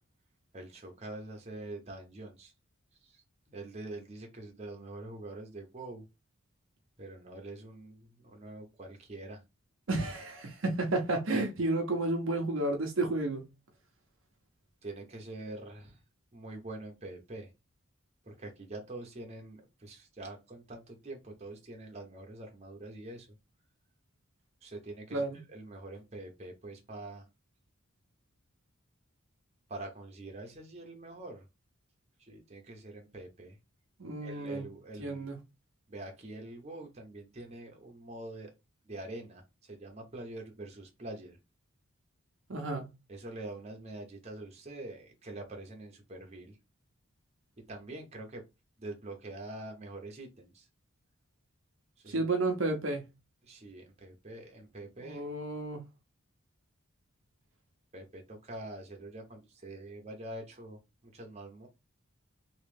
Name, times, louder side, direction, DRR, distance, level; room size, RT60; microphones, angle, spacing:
voice 1, 0.5-2.5 3.0-6.1 7.0-9.4 14.8-16.0 16.3-17.5 18.2-23.3 24.6-27.3 29.7-31.5 32.2-33.6 34.2-35.3 35.9-38.5 38.8-41.4 43.1-46.6 47.7-48.4 48.8-50.7 52.0-52.3 53.4-55.3 57.9-61.7, right 2 dB, 30° right, 0.9 m, -45 dB
voice 2, 9.9-13.4 25.1-25.4 34.0-34.6 35.0-35.4 42.5-42.9 52.1-53.0 55.0-55.8, right 2 dB, 60° right, 0.7 m, -31 dB
3.1 x 2.9 x 3.3 m
head